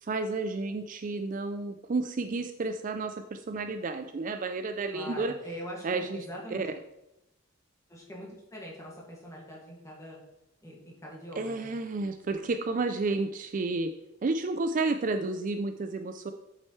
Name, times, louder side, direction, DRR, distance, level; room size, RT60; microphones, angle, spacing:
voice 1, 0.0-5.3 5.8-6.2 6.5-6.7 11.4-13.9 14.2-16.3, right 3 dB, 40° right, 7 dB, 0.4 m, -31 dB
voice 2, 4.9-6.6 7.9-10.2 10.6-11.7, equal, 15° left, -3 dB, 2.0 m, -43 dB
7.7 x 7.5 x 3.1 m, 0.88 s
head